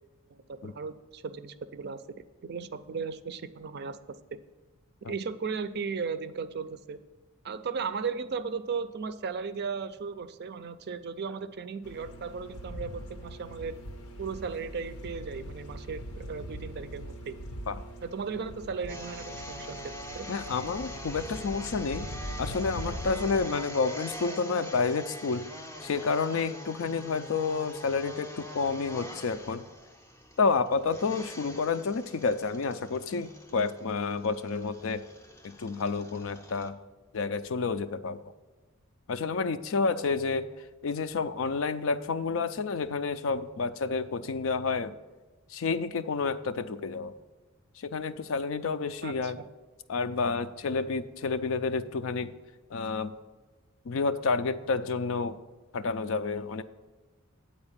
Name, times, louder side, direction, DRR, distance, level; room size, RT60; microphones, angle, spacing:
voice 1, 0.5-4.2 5.0-7.0 7.4-13.8 14.2-17.4 18.0-20.3 49.0-49.5, right 5 dB, 45° right, 12 dB, 0.4 m, -36 dB
sound 1, 11.8-23.5, equal, 85° left, 0.9 m, -42 dB
sound 2, 18.9-36.7, left 1 dB, 10° left, 0.5 m, -44 dB
voice 2, 20.3-22.1 22.4-25.5 25.8-29.6 30.4-35.0 35.4-36.8 37.1-38.2 39.1-44.9 45.5-47.1 47.8-49.4 49.9-52.3 52.7-53.1 53.8-55.4 55.7-56.6, left 4 dB, 65° left, 12 dB, 0.4 m, -30 dB
8.8 x 4.3 x 7.3 m, 1.2 s
head